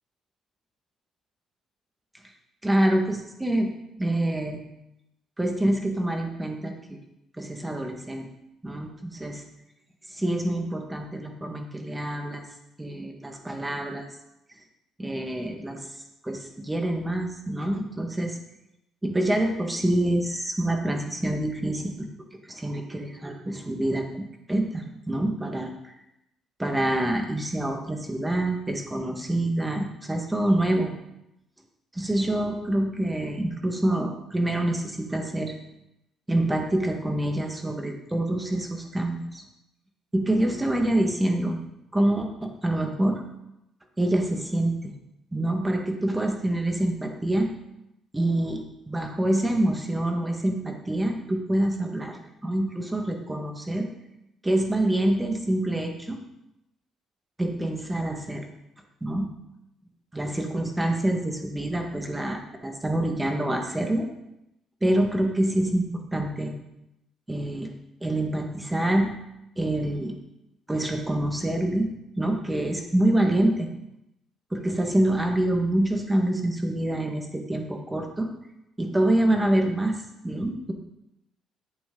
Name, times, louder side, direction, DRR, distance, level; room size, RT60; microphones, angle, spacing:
voice 1, 2.6-3.7 4.0-4.6 5.4-7.0 7.4-8.3 8.6-9.4 10.1-12.5 12.8-14.1 15.0-15.9 16.2-18.4 19.0-25.7 26.6-30.9 31.9-35.5 36.3-39.4 40.1-41.6 41.9-43.2 44.0-44.9 45.3-47.5 48.1-52.2 52.4-53.9 54.4-56.2 57.4-58.5 59.0-59.3 60.1-64.1 64.8-66.5 67.3-67.7 68.0-69.1 69.6-70.2 70.7-71.9 72.2-73.7 74.5-78.3 78.8-80.7, right 1 dB, 10° right, 3 dB, 1.7 m, -26 dB
11.0 x 8.5 x 3.9 m, 0.86 s
cardioid pair, 100°, 0 cm